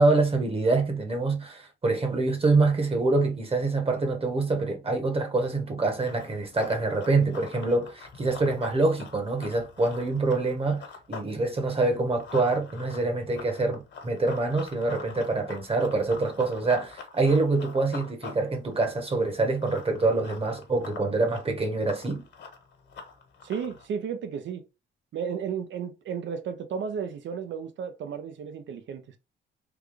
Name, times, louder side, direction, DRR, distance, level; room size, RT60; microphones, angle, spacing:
voice 1, 0.0-22.2, right 3 dB, 30° right, 1.2 m, -25 dB
Run, 5.8-11.3 11.6-23.9, left 5 dB, 65° left, 1.3 m, -44 dB
voice 2, 23.4-24.6 25.1-29.0, right 7 dB, 70° right, 0.8 m, -33 dB
3.5 x 2.3 x 3.4 m
cardioid pair, 90°, 20 cm